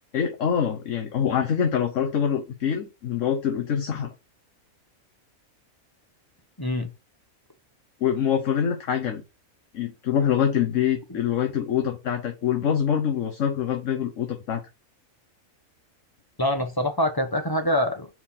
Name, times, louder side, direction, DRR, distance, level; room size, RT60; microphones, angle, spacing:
voice 1, 0.1-4.1 8.0-9.2 9.7-14.6, left 8 dB, 65° left, 1.3 m, -25 dB
voice 2, 6.6-6.9 11.1-11.2 16.4-18.1, left 1 dB, 20° left, 1.0 m, -25 dB
4.8 x 4.4 x 5.4 m
omnidirectional pair, 1.5 m